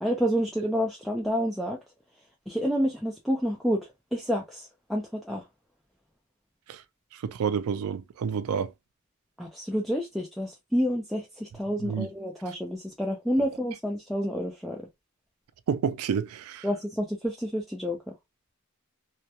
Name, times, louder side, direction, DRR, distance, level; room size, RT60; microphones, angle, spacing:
voice 1, 0.0-1.8 2.5-5.4 9.4-14.8 16.6-18.0, equal, ahead, 0.4 m, -29 dB
voice 2, 7.1-8.7 11.8-12.1 15.7-16.7, right 7 dB, 75° right, 0.3 m, -29 dB
2.2 x 2.1 x 2.7 m
head